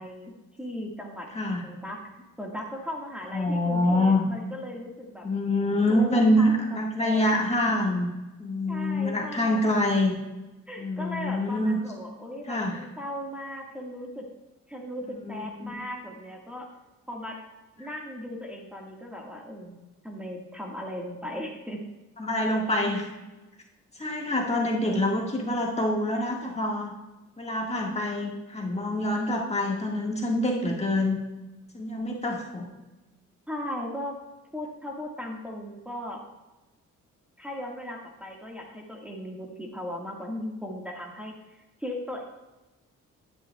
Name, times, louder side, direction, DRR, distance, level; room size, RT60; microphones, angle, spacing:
voice 1, 0.0-1.3 1.6-2.0 2.4-5.3 5.9-7.6 8.7-9.8 10.7-14.2 14.7-16.7 17.1-17.4 17.8-19.8 20.0-21.8 33.5-34.2 34.5-36.2 37.4-42.2, left 1 dB, 5° right, -2 dB, 1.6 m, -37 dB
voice 2, 3.3-4.2 5.2-8.1 8.4-10.1 10.8-11.8 12.5-12.8 15.3-15.7 22.2-23.1 24.0-26.9 27.4-31.2 31.7-32.7, left 1 dB, 20° left, -1 dB, 1.6 m, -26 dB
11.5 x 9.7 x 2.3 m, 1.1 s
cardioid pair, 90°, 30 cm